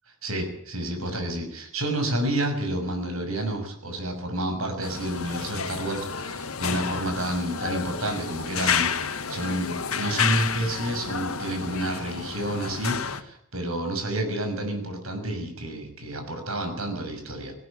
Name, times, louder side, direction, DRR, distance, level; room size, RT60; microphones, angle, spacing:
voice 1, 0.2-17.5, right 1 dB, 80° right, 5 dB, 6.4 m, -30 dB
sound 1, 4.8-13.2, left 6 dB, 85° left, 1.7 m, -30 dB
19.0 x 17.0 x 8.8 m, 0.65 s
head